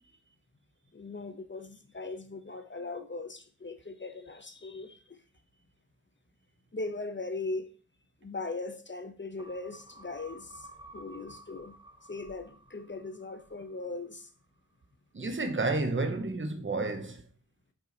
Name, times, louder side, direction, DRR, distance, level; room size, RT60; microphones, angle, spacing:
voice 1, 0.9-5.2 6.7-7.7 8.2-10.7 10.9-11.7 12.1-14.3, left 3 dB, 40° left, 0.8 m, -39 dB
sound 1, 9.4-14.1 14.4-14.5, right 2 dB, 15° right, 0.7 m, -53 dB
voice 2, 15.1-17.2, right 3 dB, 40° right, 0.9 m, -31 dB
5.5 x 4.9 x 3.9 m
wide cardioid pair, 70°, 30 cm